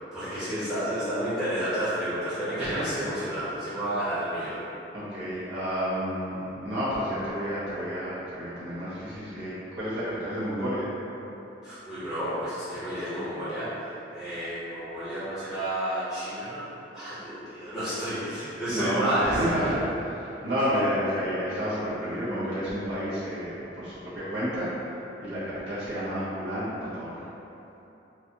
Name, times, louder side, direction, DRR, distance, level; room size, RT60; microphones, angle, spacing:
voice 1, 0.1-4.6 11.6-19.8, right 1 dB, ahead, -16 dB, 1.1 m, -31 dB
voice 2, 2.6-2.9 4.9-10.8 18.7-24.7 25.2-27.3, equal, 60° right, -13 dB, 1.1 m, -30 dB
4.0 x 2.4 x 2.9 m, 3.0 s
head